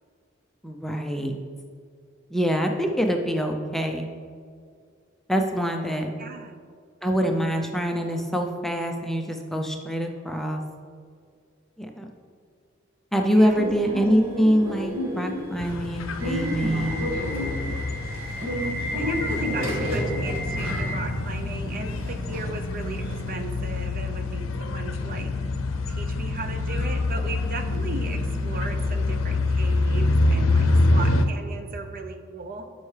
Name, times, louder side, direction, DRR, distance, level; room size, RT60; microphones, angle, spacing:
voice 1, 0.6-1.4 2.3-4.1 5.3-6.1 7.0-10.6 11.8-12.1 13.1-16.9, equal, ahead, 3 dB, 0.4 m, -24 dB
voice 2, 6.2-6.6 13.3-13.8 19.0-25.3 25.9-32.6, right 3 dB, 45° right, 6 dB, 0.6 m, -37 dB
Subway metro underground / Alarm, 13.5-23.3, equal, 90° right, 1.8 m, -31 dB
sound 1, 15.6-31.3, left 2 dB, 85° left, 0.6 m, -26 dB
12.0 x 5.5 x 3.2 m, 2.1 s
head